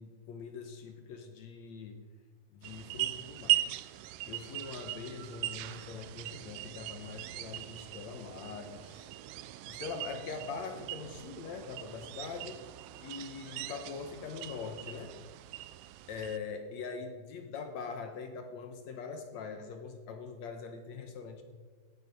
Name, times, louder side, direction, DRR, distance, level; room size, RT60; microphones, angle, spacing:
voice 1, 0.0-2.0 2.5-3.6 4.3-9.1 9.7-12.7 13.0-15.2 16.1-21.4, left 5 dB, 65° left, 6 dB, 2.0 m, -42 dB
sound 1, 2.6-16.4, right 15 dB, 80° right, 2.1 m, -39 dB
17.0 x 10.5 x 5.4 m, 1.5 s
omnidirectional pair, 4.0 m